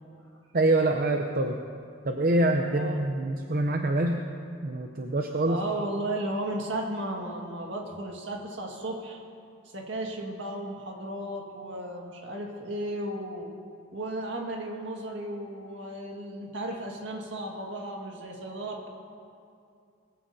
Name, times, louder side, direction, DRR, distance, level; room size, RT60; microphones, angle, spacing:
voice 1, 0.5-1.6 2.0-4.2 4.5-5.6, right 2 dB, 45° right, 3 dB, 0.6 m, -25 dB
voice 2, 2.6-3.0 5.5-9.2 9.7-13.5 13.9-18.9, right 1 dB, 65° right, 0 dB, 1.8 m, -34 dB
21.0 x 15.0 x 2.7 m, 2.4 s
head